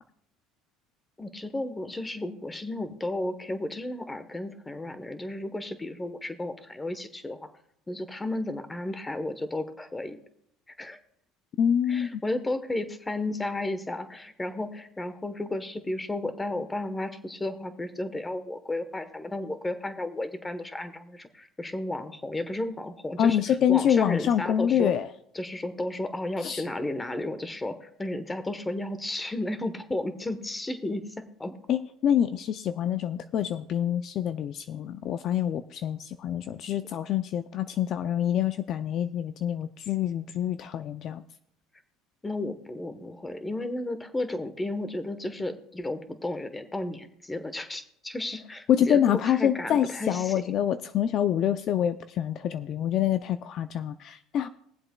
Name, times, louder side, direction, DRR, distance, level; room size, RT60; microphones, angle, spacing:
voice 1, 1.2-7.5 7.9-10.2 10.8-11.0 11.9-24.9 25.3-31.5 42.2-50.5, left 1 dB, 15° left, 10 dB, 1.0 m, -33 dB
voice 2, 11.6-12.2 23.2-25.1 26.4-26.6 31.7-41.2 48.7-54.5, left 9 dB, 50° left, 11 dB, 0.4 m, -26 dB
22.0 x 7.6 x 2.2 m, 0.71 s
supercardioid pair, 115°, 0 cm